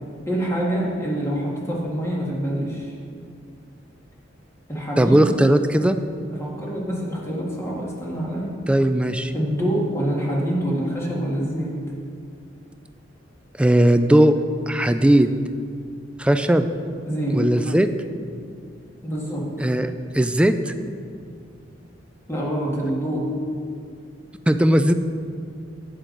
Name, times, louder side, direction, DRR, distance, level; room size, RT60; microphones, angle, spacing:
voice 1, 0.3-3.0 4.7-5.3 6.3-8.5 9.3-11.7 17.1-17.4 19.0-19.4 22.3-23.3, right 1 dB, 15° left, -4 dB, 1.8 m, -26 dB
voice 2, 5.0-6.0 8.7-9.3 13.6-14.3 14.7-15.3 16.2-16.7 17.3-17.9 19.6-19.9 20.1-20.7 24.5-24.9, right 1 dB, 5° right, 9 dB, 0.3 m, -17 dB
10.5 x 9.2 x 3.9 m, 2.3 s
head